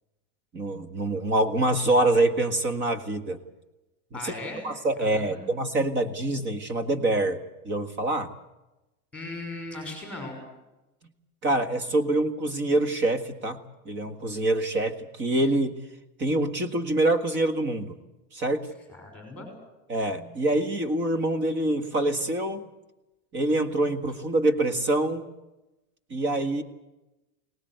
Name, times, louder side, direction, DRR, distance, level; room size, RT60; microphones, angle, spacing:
voice 1, 0.5-3.4 4.1-4.3 4.6-8.3 11.4-15.8 16.2-18.0 18.3-18.7 19.9-22.7 23.3-25.2 26.1-26.6, right 2 dB, 25° right, 9 dB, 1.8 m, -25 dB
voice 2, 4.1-4.7 5.0-5.4 9.1-10.4 18.9-19.5, left 2 dB, 5° left, 3 dB, 6.0 m, -38 dB
22.5 x 19.5 x 7.9 m, 0.99 s
supercardioid pair, 160°, 47 cm